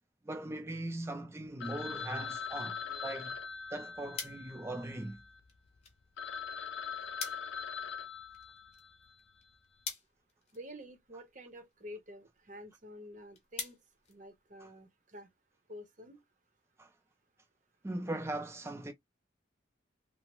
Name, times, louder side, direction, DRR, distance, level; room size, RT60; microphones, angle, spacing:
voice 1, 0.2-3.4 3.7-5.2 14.6-14.7 16.8-16.9 17.8-18.9, right 1 dB, 15° right, 0.3 m, -40 dB
Telephone, 1.6-5.4 5.9-6.0 6.2-9.0, left 6 dB, 75° left, 0.5 m, -42 dB
sound 1, 3.6-14.9, left 5 dB, 35° left, 0.8 m, -49 dB
voice 2, 10.5-13.8 14.1-15.3 15.7-16.2, equal, 40° right, 0.7 m, -49 dB
2.9 x 2.0 x 2.9 m
head